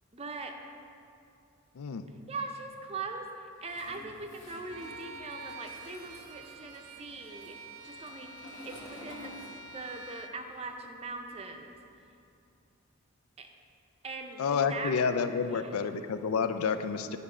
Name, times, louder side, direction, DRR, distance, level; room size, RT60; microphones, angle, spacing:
voice 1, 0.1-0.5 2.3-7.5 7.8-9.3 9.7-11.8 13.4-13.5 14.0-15.2 15.5-16.1, right 3 dB, 30° right, 4 dB, 0.5 m, -41 dB
voice 2, 1.8-2.1 14.4-17.2, left 6 dB, 75° left, 10 dB, 0.4 m, -29 dB
Toilet flush, 3.6-10.1 10.3-11.9, left 1 dB, 55° left, 1.3 m, -51 dB
Bowed string instrument, 4.7-10.4, right 3 dB, 85° right, 0.5 m, -47 dB
10.5 x 4.1 x 4.9 m, 2.5 s
head